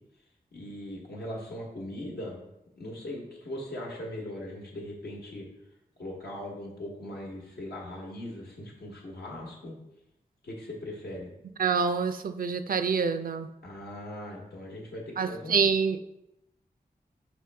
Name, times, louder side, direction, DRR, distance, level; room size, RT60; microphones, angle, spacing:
voice 1, 0.5-2.4 2.8-5.5 6.0-9.8 10.4-11.3 13.6-15.7, left 1 dB, 90° left, -2 dB, 1.1 m, -39 dB
voice 2, 11.6-13.5 15.2-16.0, right 5 dB, 65° right, 10 dB, 0.4 m, -26 dB
5.3 x 3.1 x 3.3 m, 0.86 s
cardioid pair, 45°, 16 cm